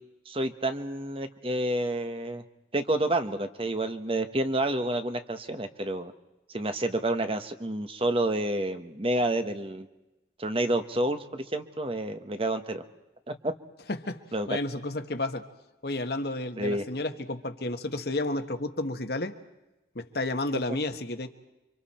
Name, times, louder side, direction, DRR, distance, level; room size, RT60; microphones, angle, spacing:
voice 1, 0.2-2.4 2.7-6.1 6.5-9.9 10.4-12.8 13.3-13.5 14.3-14.5 16.6-16.8, right 1 dB, 30° right, 8 dB, 1.3 m, -29 dB
voice 2, 13.9-15.5 15.8-19.3 19.9-21.3, left 2 dB, 55° left, 7 dB, 1.5 m, -31 dB
30.0 x 25.5 x 4.4 m, 0.99 s
head